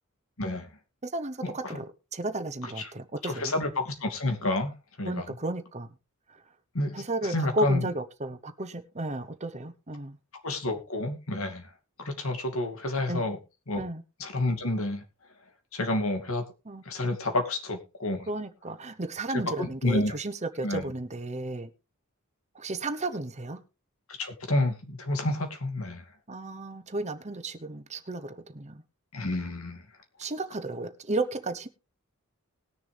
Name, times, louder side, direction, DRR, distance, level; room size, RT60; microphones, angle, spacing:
voice 1, 0.4-0.7 1.4-1.8 2.6-2.9 3.2-5.2 6.7-7.8 10.4-11.7 12.0-13.4 13.7-13.8 14.2-15.0 15.7-16.4 16.9-18.3 19.3-20.2 20.6-20.8 24.2-26.0 29.1-29.8, left 2 dB, 70° left, 2.5 m, -29 dB
voice 2, 1.0-1.9 2.1-3.5 5.0-5.9 6.9-10.2 13.1-13.2 13.7-14.0 16.6-16.8 18.3-21.7 22.5-23.6 26.3-28.8 30.2-31.7, right 2 dB, 30° right, 1.0 m, -33 dB
20.0 x 6.9 x 3.4 m
head